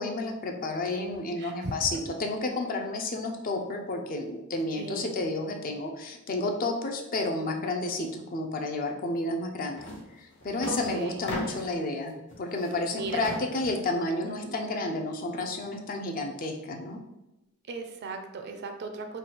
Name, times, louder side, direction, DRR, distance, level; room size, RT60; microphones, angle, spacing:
voice 1, 0.0-9.9 10.2-17.0, left 2 dB, 40° left, 3 dB, 0.5 m, -31 dB
voice 2, 1.4-1.8 4.8-5.1 10.7-11.2 12.9-13.2 14.2-14.5 17.7-19.2, right 4 dB, 50° right, 5 dB, 0.4 m, -37 dB
sound 1, 9.8-10.0 10.3-11.8 12.3-13.9, left 1 dB, 60° left, 0.9 m, -37 dB
3.3 x 2.3 x 4.4 m, 0.96 s
head